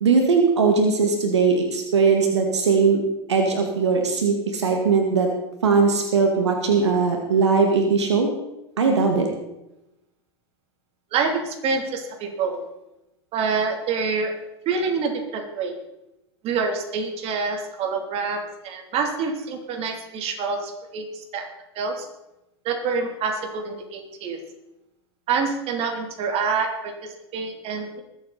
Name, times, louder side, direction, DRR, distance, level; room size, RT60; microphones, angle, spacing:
voice 1, 0.0-3.0 3.3-5.3 5.6-8.3 8.8-9.3, right 5 dB, 85° right, 3 dB, 2.2 m, -19 dB
voice 2, 11.1-12.7 13.3-14.3 14.6-15.7 16.4-21.4 21.7-22.1 22.6-24.4 25.3-28.0, right 5 dB, 45° right, 3 dB, 3.2 m, -26 dB
21.0 x 8.5 x 4.2 m, 0.90 s
hypercardioid pair, 95°, 14 cm